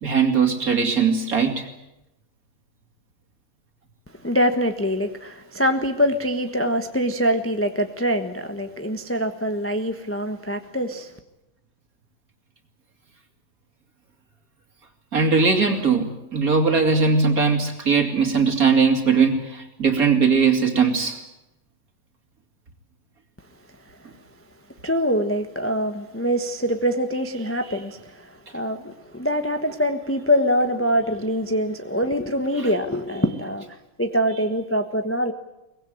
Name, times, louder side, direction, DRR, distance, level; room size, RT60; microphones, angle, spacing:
voice 1, 0.0-1.7 15.1-21.2, right 5 dB, 40° right, 3.1 m, -20 dB
voice 2, 4.2-11.1 24.8-35.3, equal, 10° left, 0.8 m, -24 dB
23.5 x 20.0 x 9.3 m
omnidirectional pair, 2.4 m